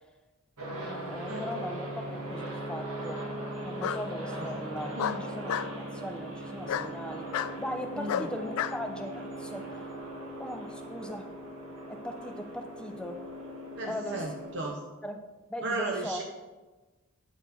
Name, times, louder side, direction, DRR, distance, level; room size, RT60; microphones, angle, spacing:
sound 1, 0.6-14.7, right 1 dB, 90° right, 1.5 m, -39 dB
voice 1, 0.7-1.9 2.1-3.2 3.6-5.6 5.9-9.8 10.4-11.3 11.9-13.2 13.8-14.2 15.0-15.2 15.5-16.2, equal, 5° left, 4 dB, 0.4 m, -39 dB
Bark, 1.6-2.3 3.8-4.0 5.0-5.7 6.7-6.9 7.3-7.5 8.1-8.8, left 8 dB, 90° left, 0.3 m, -31 dB
voice 2, 13.8-14.8 15.6-16.2, right 2 dB, 55° right, 1 dB, 0.7 m, -35 dB
8.0 x 4.2 x 4.1 m, 1.2 s
head